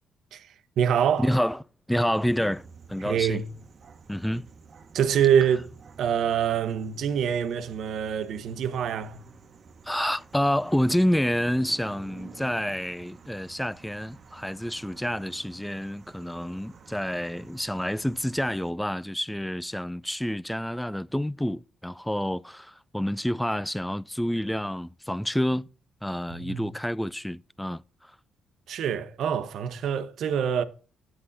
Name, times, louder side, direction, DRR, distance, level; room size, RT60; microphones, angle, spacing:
voice 1, 0.3-1.3 3.0-3.5 4.9-5.7 6.0-9.2 26.3-26.7 28.7-30.6, right 8 dB, 70° right, 0.9 m, -25 dB
voice 2, 1.2-1.6 1.9-3.4 4.1-4.5 9.8-25.7 26.0-28.1, equal, 5° left, 0.4 m, -28 dB
sound 1, 2.1-18.7, right 5 dB, 50° right, 1.1 m, -51 dB
10.0 x 7.7 x 4.0 m
cardioid pair, 90°, 0 cm